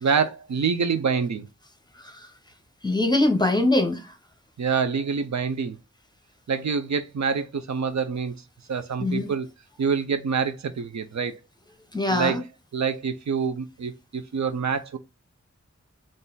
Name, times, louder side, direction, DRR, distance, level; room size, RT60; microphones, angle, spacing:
voice 1, 0.0-1.5 4.6-5.8 6.5-8.3 8.7-9.5 9.8-11.4 12.1-12.4 12.7-15.0, right 6 dB, 70° right, 0.5 m, -26 dB
voice 2, 2.8-4.1 9.0-9.3 11.9-12.4, left 2 dB, 15° left, 0.8 m, -23 dB
3.9 x 2.5 x 3.8 m
wide cardioid pair, 55°, 29 cm